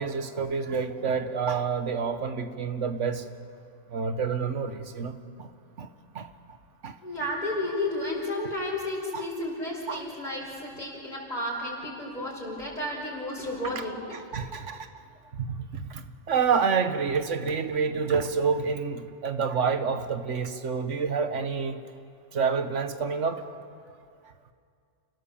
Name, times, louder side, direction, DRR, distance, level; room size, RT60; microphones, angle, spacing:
voice 1, 0.0-3.2 3.9-5.5 5.8-5.9 6.1-6.3 6.8-7.0 8.4-8.5 9.1-9.2 9.9-10.1 13.6-13.8 14.1-14.9 15.4-21.8 22.3-23.5, right 5 dB, 75° right, 9 dB, 1.5 m, -28 dB
voice 2, 7.0-14.1, left 1 dB, 35° left, -4 dB, 5.3 m, -32 dB
29.5 x 17.0 x 7.2 m, 2.3 s
omnidirectional pair, 1.2 m